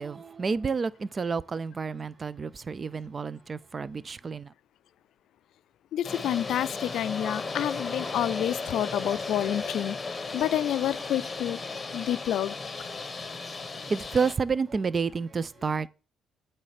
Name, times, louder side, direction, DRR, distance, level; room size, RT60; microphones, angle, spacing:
voice 1, 0.0-4.5 13.9-15.9, right 5 dB, 35° right, 0.3 m, -30 dB
voice 2, 5.9-10.0 10.3-11.6 11.9-12.6, left 11 dB, 75° left, 0.3 m, -28 dB
sound 1, 6.0-14.3, left 3 dB, 25° left, 1.4 m, -35 dB
8.4 x 3.3 x 4.9 m
cardioid pair, 90°, 0 cm